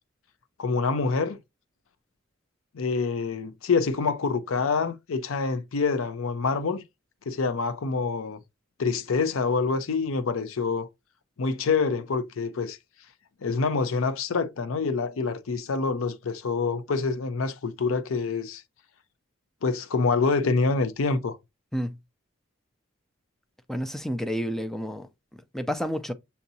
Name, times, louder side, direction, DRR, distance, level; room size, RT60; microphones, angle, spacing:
voice 1, 0.6-1.4 2.7-6.8 7.3-8.4 8.8-10.9 11.4-12.8 13.4-18.6 19.6-21.4, left 4 dB, 90° left, 0.5 m, -26 dB
voice 2, 23.7-25.1 25.5-26.1, equal, ahead, 0.3 m, -29 dB
7.0 x 2.7 x 2.6 m
head